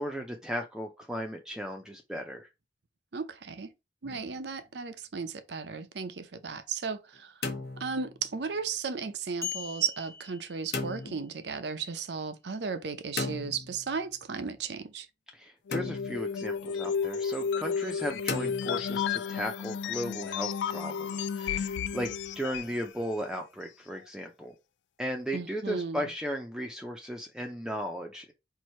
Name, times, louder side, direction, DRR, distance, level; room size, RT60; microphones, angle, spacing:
voice 1, 0.0-2.5 15.3-22.1 22.3-24.5 25.0-28.3, equal, 5° right, 0.6 m, -36 dB
voice 2, 3.1-3.7 4.0-7.5 7.8-15.1 25.3-26.1, right 5 dB, 75° right, 0.6 m, -35 dB
sound 1, 4.0-4.6 7.1-8.4 10.7-11.3 13.2-14.1 15.7-16.4 18.3-19.2, left 3 dB, 65° left, 0.9 m, -36 dB
sound 2, 9.4-11.3, left 8 dB, 15° left, 1.0 m, -40 dB
sound 3, 15.7-22.8, left 7 dB, 85° left, 0.3 m, -32 dB
4.6 x 2.7 x 4.3 m
head